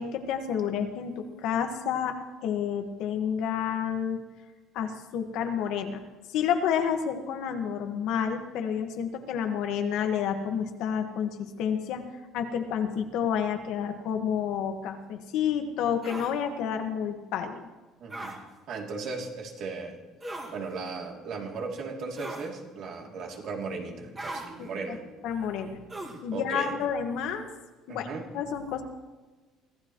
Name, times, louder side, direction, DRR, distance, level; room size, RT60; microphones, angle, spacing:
voice 1, 0.0-2.2 2.4-4.2 4.7-6.0 6.3-12.0 12.3-17.7 24.6-24.7 25.2-25.8 26.2-27.5 27.9-28.8, left 8 dB, 65° left, 5 dB, 1.6 m, -30 dB
sound 1, 16.0-16.3 18.1-18.4 20.2-20.5 22.2-22.5 24.2-24.5 25.9-26.2, right 2 dB, 15° right, 2.1 m, -38 dB
voice 2, 18.0-18.4 18.7-20.0 20.5-25.1 26.3-26.7 27.9-28.3, right 4 dB, 50° right, 0 dB, 3.0 m, -36 dB
24.5 x 16.0 x 3.2 m, 1.3 s
cardioid pair, 165°, 0 cm